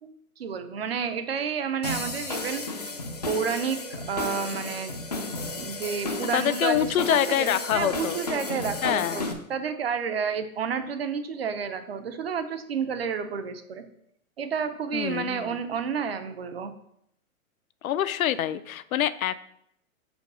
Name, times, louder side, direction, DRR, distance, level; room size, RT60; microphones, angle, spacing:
voice 1, 0.0-2.6 3.3-4.9 5.2-13.8 14.4-16.7, right 6 dB, 45° right, 10 dB, 0.6 m, -30 dB
sound 1, 1.8-9.3, left 3 dB, 30° left, 0.4 m, -33 dB
voice 2, 6.3-8.2 8.8-9.3 14.9-15.6 17.8-19.4, left 11 dB, 75° left, 15 dB, 0.6 m, -26 dB
5.2 x 4.6 x 6.0 m, 0.75 s
hypercardioid pair, 175°, 42 cm